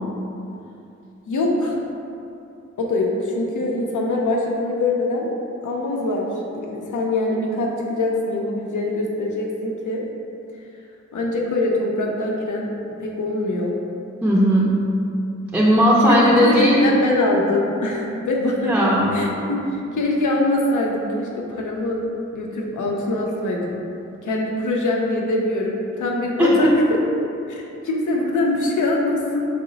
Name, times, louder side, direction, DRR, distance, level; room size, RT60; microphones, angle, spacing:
voice 1, 1.3-1.8 2.8-5.3 5.6-10.0 11.1-12.7 13.0-13.8 16.0-18.7 19.1-22.0 22.3-23.8 24.2-27.0 27.5-29.4, left 2 dB, 85° left, -1 dB, 0.5 m, -23 dB
voice 2, 14.2-14.8 15.5-16.9 18.7-19.1 26.4-26.7, equal, 5° right, -5 dB, 0.5 m, -16 dB
3.8 x 2.1 x 3.8 m, 2.7 s
cardioid pair, 55°, 30 cm